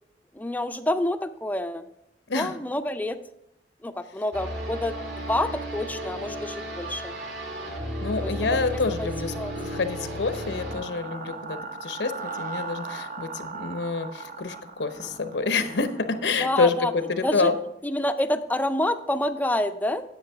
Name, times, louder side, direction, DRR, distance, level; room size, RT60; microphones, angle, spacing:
voice 1, 0.3-1.8 2.3-3.2 3.8-7.2 8.2-8.3 8.7-9.1 9.3-9.8 16.4-16.9 17.2-17.5 17.8-20.0, left 1 dB, 10° left, 10 dB, 0.4 m, -28 dB
sound 1, 4.3-10.8, equal, 75° right, 2.1 m, -34 dB
voice 2, 8.0-12.1 12.4-17.6, left 4 dB, 85° left, 9 dB, 0.7 m, -27 dB
sound 2, 8.8-17.7, right 4 dB, 50° right, 0.8 m, -39 dB
9.7 x 7.7 x 3.4 m, 0.81 s
head